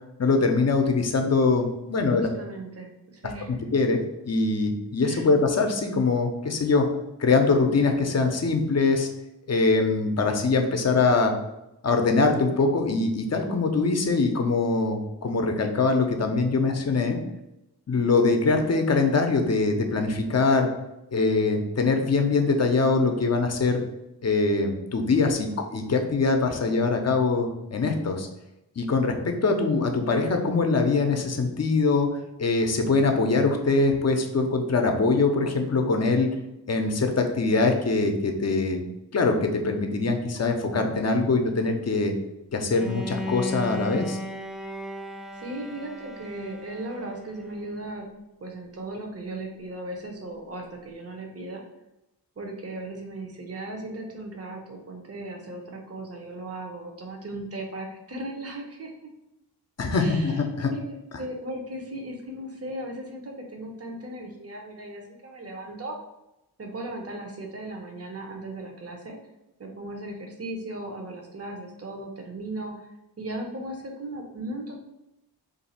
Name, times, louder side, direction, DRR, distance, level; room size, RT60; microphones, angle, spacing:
voice 1, 0.2-2.3 3.7-4.0 4.3-6.9 7.2-9.1 9.5-11.3 11.8-17.2 17.9-20.7 21.1-23.8 24.2-28.3 28.8-32.1 32.4-36.3 36.7-38.8 39.1-42.1 42.5-44.2 59.8-60.7, left 3 dB, 40° left, 5 dB, 0.6 m, -23 dB
voice 2, 2.1-3.6 5.0-5.3 45.3-48.1 48.4-51.6 52.4-58.9 60.0-60.4 60.7-66.0 66.6-69.2 69.6-72.9 73.2-74.8, right 1 dB, 35° right, 2 dB, 0.7 m, -37 dB
Bowed string instrument, 42.7-47.7, left 1 dB, ahead, 0.3 m, -35 dB
2.6 x 2.4 x 4.1 m, 0.90 s
cardioid pair, 40°, 40 cm